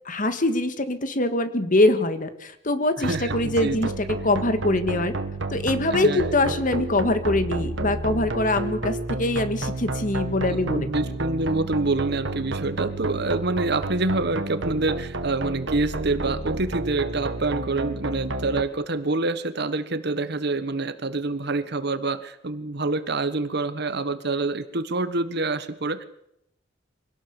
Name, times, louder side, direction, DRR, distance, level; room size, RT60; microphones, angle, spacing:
voice 1, 0.1-5.1 5.5-10.9, left 2 dB, 45° left, 10 dB, 1.8 m, -23 dB
voice 2, 3.0-3.8 5.9-6.8 10.5-26.0, right 3 dB, 60° right, 13 dB, 1.3 m, -27 dB
sound 1, 3.0-18.6, right 2 dB, 75° right, 2.0 m, -31 dB
24.5 x 18.0 x 7.1 m, 0.81 s
head